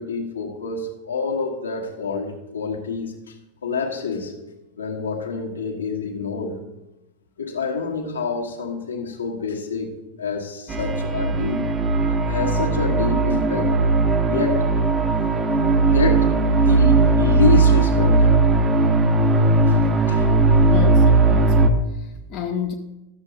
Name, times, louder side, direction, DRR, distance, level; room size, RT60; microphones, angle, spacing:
voice 1, 0.0-3.3 3.6-4.3 4.8-6.6 7.4-11.7 12.1-13.7 14.3-14.7 15.8-18.3 19.7-19.8 20.1-20.3, left 4 dB, 75° left, 0 dB, 1.4 m, -27 dB
sound 1, 10.7-21.7, right 3 dB, 20° right, 0.8 m, -18 dB
voice 2, 20.6-22.7, left 7 dB, 35° left, 4 dB, 0.6 m, -31 dB
12.5 x 7.1 x 2.8 m, 0.98 s
figure-of-eight pair, 90°, 0 cm